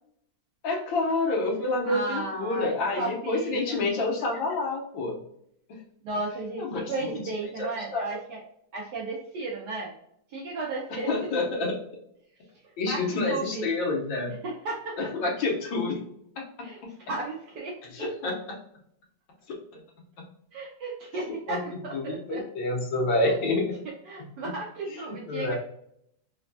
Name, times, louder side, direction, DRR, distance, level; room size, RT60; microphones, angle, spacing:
voice 1, 0.6-5.2 5.7-5.8 6.6-7.1 7.6-8.1 11.1-11.8 12.8-14.3 15.0-16.0 16.4-16.5 16.8-16.9 17.9-18.6 19.7-19.8 21.5-21.6 21.9-23.6 24.2-24.3 24.9-25.0 25.3-25.5, left 2 dB, 85° left, -1 dB, 1.7 m, -28 dB
voice 2, 1.8-3.8 6.0-8.4 8.7-9.9 10.3-11.1 12.8-13.7 14.4-15.0 16.6-16.8 17.1-17.7 20.5-22.4 23.2-23.3 24.1-25.5, right 2 dB, 65° right, -4 dB, 1.2 m, -34 dB
4.1 x 2.2 x 2.6 m, 0.71 s
omnidirectional pair, 2.0 m